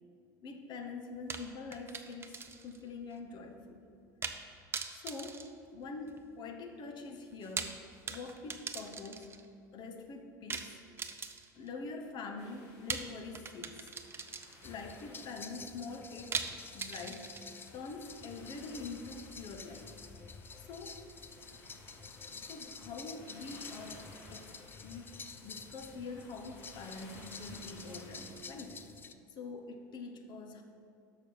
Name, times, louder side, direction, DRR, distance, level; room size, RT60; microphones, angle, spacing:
voice 1, 0.4-3.8 4.9-7.8 8.1-9.3 9.7-10.8 11.5-14.0 14.6-16.4 16.7-17.3 17.7-19.9 20.6-21.0 22.2-28.9 29.3-30.6, left 3 dB, 45° left, 4 dB, 1.1 m, -45 dB
sound 1, 1.3-2.8 3.1-3.2 4.2-4.5 4.7-6.3 7.3-9.5 10.5-11.7 12.9-14.8 16.3-17.7, right 5 dB, 25° right, 0.6 m, -41 dB
sound 2, 12.4-28.4, left 2 dB, 60° left, 2.0 m, -58 dB
sound 3, 14.6-29.1, left 5 dB, 20° left, 0.5 m, -50 dB
6.3 x 5.8 x 7.1 m, 2.6 s
hypercardioid pair, 75°, 10 cm